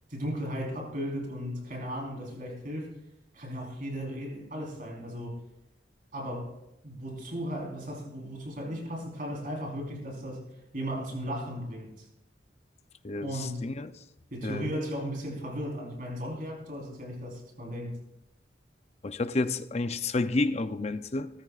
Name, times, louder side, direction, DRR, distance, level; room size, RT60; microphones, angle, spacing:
voice 1, 0.1-3.0 3.3-5.4 6.1-6.5 6.8-10.5 10.7-12.1 13.2-13.6 14.3-18.0, equal, 45° right, 4.1 m, -36 dB
voice 2, 13.0-13.9 14.4-14.7 19.0-21.3, left 2 dB, 35° left, 0.6 m, -30 dB
19.0 x 14.0 x 2.5 m
head